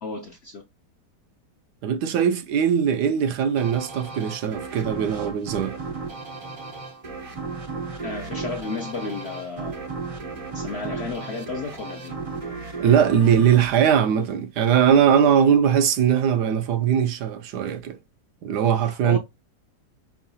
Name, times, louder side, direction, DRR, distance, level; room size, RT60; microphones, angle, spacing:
voice 1, 0.0-0.6 8.0-9.8 10.5-12.1 18.7-19.2, left 4 dB, 65° left, 0.6 m, -33 dB
voice 2, 1.8-5.8 12.8-18.0 18.4-19.2, right 8 dB, 80° right, 1.2 m, -20 dB
sound 1, 3.6-14.8, right 4 dB, 60° right, 0.3 m, -35 dB
5.7 x 2.3 x 2.7 m
omnidirectional pair, 1.8 m